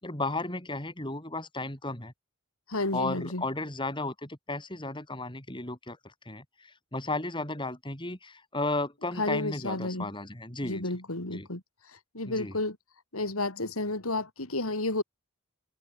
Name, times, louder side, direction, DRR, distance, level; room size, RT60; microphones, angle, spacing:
voice 1, 0.0-2.1 2.9-6.0 6.3-11.0 11.3-11.5 12.2-12.6, left 2 dB, 20° left, 4.5 m, -34 dB
voice 2, 2.7-3.4 9.2-10.1 10.6-11.6 12.1-12.8 13.1-15.0, left 2 dB, 85° left, 4.2 m, -31 dB
head